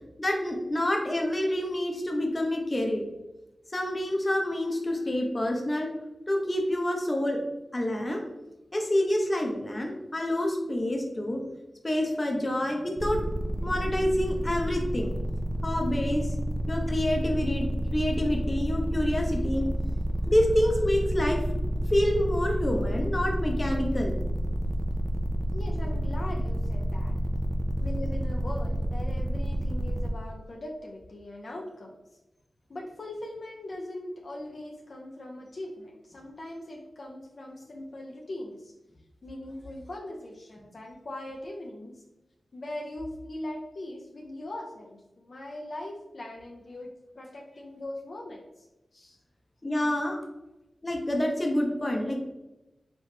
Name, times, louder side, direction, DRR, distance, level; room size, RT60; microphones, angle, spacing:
voice 1, 0.2-3.0 3.7-5.9 6.3-7.4 7.7-8.2 8.7-11.4 11.8-13.2 13.5-15.2 15.6-16.3 16.7-19.7 20.3-21.4 21.9-24.2 49.6-50.1 50.8-52.2, left 1 dB, 30° left, 1 dB, 0.7 m, -27 dB
sound 1, 13.0-30.1, equal, 30° right, 0.5 m, -29 dB
voice 2, 13.8-14.5 25.5-27.2 27.8-32.0 32.7-38.7 39.2-42.0 42.5-48.7 48.9-49.2 50.0-50.2, left 1 dB, 60° left, 0 dB, 0.4 m, -40 dB
3.2 x 3.1 x 2.8 m, 0.98 s
cardioid pair, 65°, 0 cm